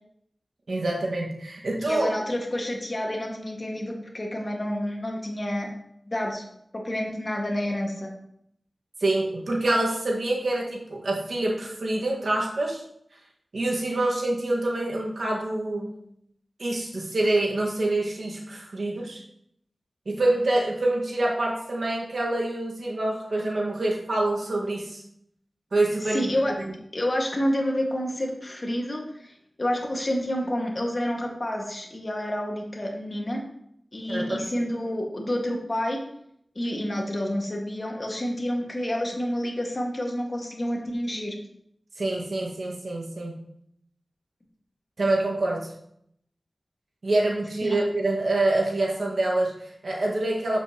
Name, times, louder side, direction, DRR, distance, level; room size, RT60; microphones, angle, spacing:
voice 1, 0.7-2.1 9.0-12.8 13.5-16.0 16.6-19.2 20.0-25.0 25.7-26.3 26.6-26.7 34.1-34.4 42.0-43.4 45.0-45.7 47.0-50.6, right 2 dB, 80° right, -2 dB, 1.6 m, -26 dB
voice 2, 1.8-5.7 6.1-6.5 6.7-8.1 26.1-26.5 26.9-33.4 33.9-36.0 36.6-41.4 47.6-47.8, left 1 dB, 45° left, 0 dB, 1.7 m, -29 dB
7.8 x 7.1 x 2.9 m, 0.72 s
wide cardioid pair, 50°, 0 cm